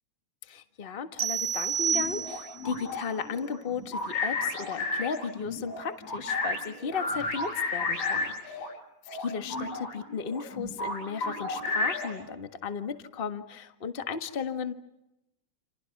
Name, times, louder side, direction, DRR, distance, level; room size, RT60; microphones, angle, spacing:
voice 1, 0.5-8.7 9.1-14.7, left 6 dB, 30° left, 8 dB, 1.1 m, -35 dB
sound 1, 1.2-2.7, right 7 dB, 60° right, 2.0 m, -29 dB
sound 2, 1.9-8.7 9.1-12.3, left 3 dB, 55° left, 8.9 m, -33 dB
29.0 x 28.0 x 6.0 m, 0.90 s
omnidirectional pair, 3.3 m